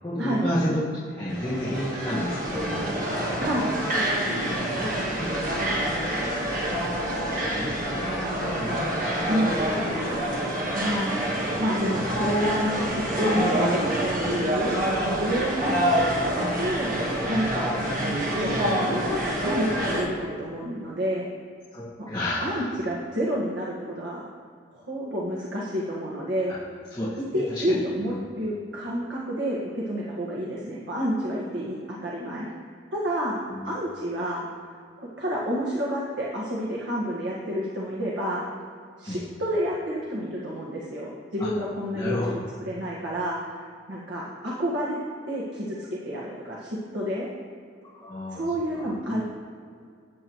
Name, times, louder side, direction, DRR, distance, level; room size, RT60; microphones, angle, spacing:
voice 1, 0.0-2.9 4.5-6.0 7.3-9.8 15.6-15.8 21.7-22.7 26.5-26.6 26.9-27.8 28.1-28.2 33.5-33.7 39.0-39.2 41.4-41.5 41.9-42.3 48.0-48.4 48.7-49.2, left 1 dB, 25° left, -11 dB, 1.8 m, -32 dB
sound 1, 1.3-20.1, right 1 dB, 50° right, 1.5 m, -27 dB
voice 2, 9.3-9.6 10.7-11.2 11.6-14.8 15.2-15.9 16.3-17.0 17.2-21.2 22.0-22.1 22.4-24.2 24.7-26.5 27.3-32.5 32.9-33.4 33.6-34.5 35.2-38.5 39.0-42.2 42.6-43.6 43.9-47.3 48.3-49.2, equal, 75° right, -5 dB, 1.7 m, -29 dB
14.5 x 9.0 x 3.1 m, 2.3 s
head